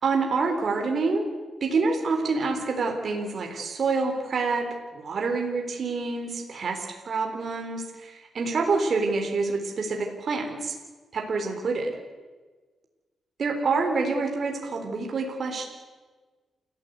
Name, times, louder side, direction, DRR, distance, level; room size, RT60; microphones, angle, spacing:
voice 1, 0.0-1.3 1.6-4.7 4.9-10.7 11.1-12.0 13.4-15.7, right 4 dB, 50° right, 2 dB, 3.8 m, -27 dB
29.0 x 14.5 x 8.2 m, 1.3 s
cardioid pair, 120°, 0 cm